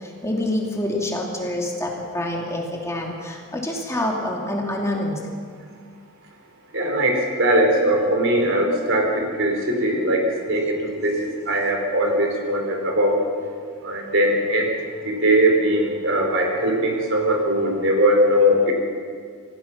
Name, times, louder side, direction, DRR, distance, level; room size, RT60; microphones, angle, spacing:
voice 1, 0.2-1.9 2.1-3.1 3.5-5.2, left 1 dB, 15° left, -1 dB, 2.8 m, -26 dB
voice 2, 6.7-13.2 13.8-14.7 15.0-18.7, equal, 60° right, 1 dB, 4.5 m, -20 dB
28.0 x 16.0 x 6.1 m, 2.1 s
head